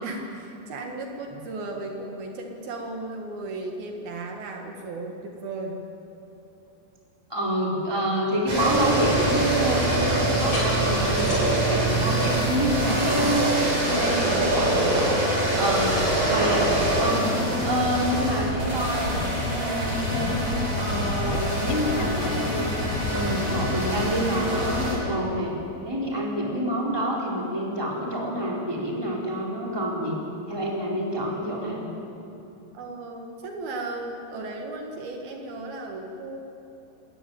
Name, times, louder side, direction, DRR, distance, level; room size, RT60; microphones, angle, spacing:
voice 1, 0.0-5.8 14.0-14.4 15.5-15.8 32.7-36.4, right 2 dB, 70° right, 2 dB, 3.5 m, -35 dB
voice 2, 7.3-15.9 16.2-17.3 17.6-20.4 20.8-22.7 23.1-25.5 25.8-30.2 30.5-31.8, equal, 5° right, -3 dB, 3.7 m, -28 dB
sound 1, 8.5-24.9, right 1 dB, 40° right, 6.4 m, -24 dB
sound 2, 10.2-14.7, equal, 30° left, 7.2 m, -39 dB
sound 3, 19.1-24.3, left 11 dB, 80° left, 2.5 m, -34 dB
28.0 x 14.0 x 9.3 m, 2.9 s
omnidirectional pair, 4.6 m